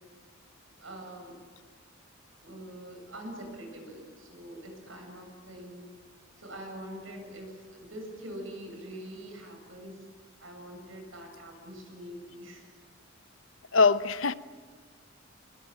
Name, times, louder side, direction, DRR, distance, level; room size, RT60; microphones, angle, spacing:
voice 1, 0.8-1.4 2.4-5.9 6.4-10.1 10.4-12.7, right 1 dB, 80° right, 8.0 m, -44 dB
voice 2, 13.7-14.3, left 4 dB, 80° left, 0.8 m, -22 dB
24.0 x 21.5 x 9.2 m
head